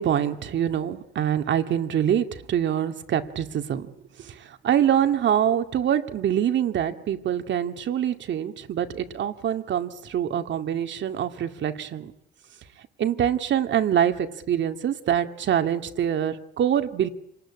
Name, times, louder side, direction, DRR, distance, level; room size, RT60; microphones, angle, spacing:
voice 1, 0.0-3.9 4.3-4.4 4.6-12.1 13.0-17.1, right 9 dB, 65° right, 7 dB, 2.3 m, -25 dB
27.5 x 19.5 x 9.9 m, 0.80 s
cardioid pair, 90°, 20 cm